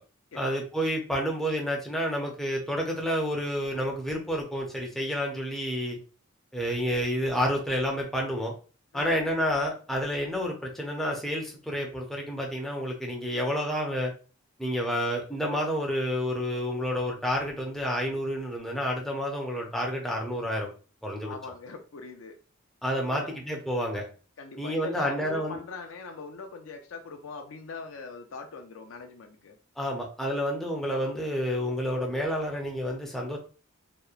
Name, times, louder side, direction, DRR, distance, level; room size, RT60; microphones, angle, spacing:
voice 1, 0.3-6.0 6.5-8.5 8.9-14.1 14.6-20.7 21.0-21.3 22.8-24.0 24.6-25.6 29.8-33.4, equal, ahead, 0.4 m, -29 dB
voice 2, 21.2-22.4 23.0-23.4 24.4-29.6, left 4 dB, 70° left, 0.4 m, -41 dB
2.8 x 2.0 x 2.3 m
head